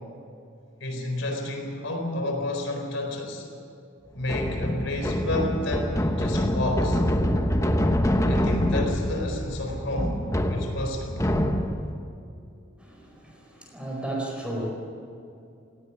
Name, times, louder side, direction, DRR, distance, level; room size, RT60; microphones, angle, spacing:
voice 1, 0.8-3.5 4.1-7.0 8.2-10.2 10.5-11.2, left 1 dB, 65° left, 2 dB, 4.2 m, -30 dB
sound 1, 4.2-12.0, equal, 15° left, 1.1 m, -25 dB
voice 2, 12.8-14.7, right 1 dB, 5° right, -1 dB, 4.8 m, -34 dB
18.5 x 17.0 x 10.0 m, 2.6 s
head